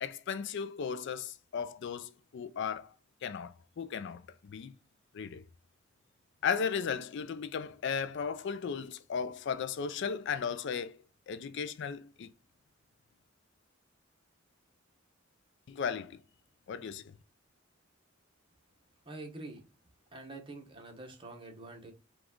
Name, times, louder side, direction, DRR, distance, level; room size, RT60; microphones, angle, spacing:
voice 1, 0.0-3.0 3.2-4.7 5.1-5.4 6.4-11.0 11.3-12.3 15.7-16.2 16.7-17.2, left 6 dB, 60° left, 0.4 m, -36 dB
voice 2, 19.0-19.6 20.1-21.9, right 2 dB, 25° right, 1.0 m, -46 dB
4.9 x 2.4 x 3.7 m
head